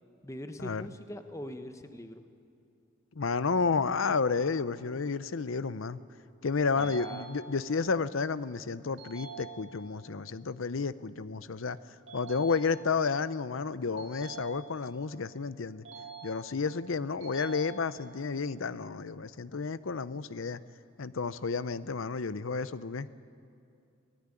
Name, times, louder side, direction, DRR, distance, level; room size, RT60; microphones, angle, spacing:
voice 1, 0.2-2.2 6.8-7.3, left 1 dB, 15° left, 8 dB, 0.9 m, -42 dB
voice 2, 3.2-6.0 6.4-15.8 16.2-20.6 21.0-23.1, left 4 dB, 75° left, 16 dB, 0.7 m, -31 dB
sound 1, 6.8-7.8 9.0-10.0 12.1-13.1 14.0-15.0 15.8-16.8 17.2-18.2, right 5 dB, 65° right, 4.9 m, -46 dB
24.0 x 15.5 x 9.8 m, 2.5 s
head